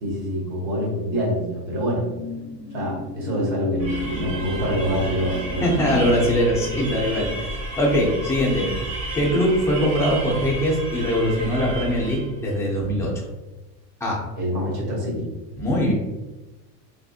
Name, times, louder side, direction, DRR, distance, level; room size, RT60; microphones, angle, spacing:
voice 1, 0.0-2.1 2.7-6.3 12.9-13.1 14.4-15.6, equal, 85° right, -3 dB, 1.4 m, -26 dB
sound 1, 1.3-10.0 10.4-10.6, left 4 dB, 55° left, 0.5 m, -35 dB
sound 2, 3.8-12.4, right 2 dB, 30° right, 0.9 m, -32 dB
voice 2, 5.6-8.7 9.1-13.2 14.0-14.2 15.6-15.9, equal, 5° left, -4 dB, 0.5 m, -22 dB
3.5 x 2.5 x 2.4 m, 1.1 s
cardioid pair, 145°, 45 cm